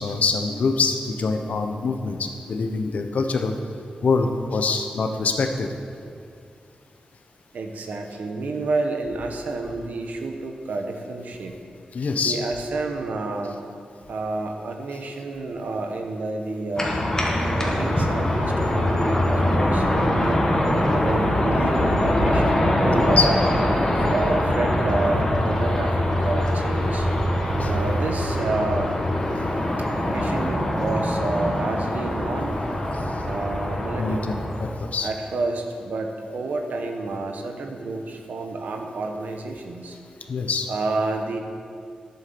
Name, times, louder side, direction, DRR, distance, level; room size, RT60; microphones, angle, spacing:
voice 1, 0.0-3.5 4.0-5.7 11.9-12.4 23.0-23.3 27.6-27.9 34.0-35.1 40.3-40.7, left 4 dB, 65° left, 5 dB, 1.0 m, -24 dB
voice 2, 7.5-11.5 12.2-13.6 14.1-16.9 17.5-20.4 20.9-23.4 23.9-27.1 27.7-29.0 30.0-32.6 33.3-34.3 35.0-40.0 40.7-41.4, right 3 dB, 85° right, 4 dB, 1.3 m, -29 dB
sound 1, 16.8-34.7, left 1 dB, 20° left, 1.9 m, -23 dB
11.0 x 8.4 x 7.0 m, 2.3 s
wide cardioid pair, 150°, 3 cm